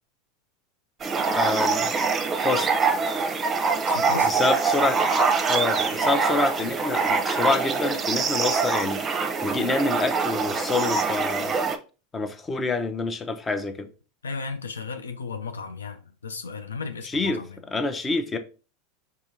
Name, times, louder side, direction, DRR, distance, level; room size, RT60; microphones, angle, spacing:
sound 1, 1.0-11.7, right 4 dB, 25° right, 0.7 m, -24 dB
voice 1, 1.3-1.9 2.4-2.9 4.2-5.1 5.5-11.6 12.1-13.9 17.0-17.4 17.7-18.4, left 3 dB, 20° left, 0.7 m, -27 dB
voice 2, 3.9-4.3 14.2-17.5, left 4 dB, 90° left, 0.5 m, -34 dB
4.7 x 3.7 x 2.7 m
hypercardioid pair, 90°, 0 cm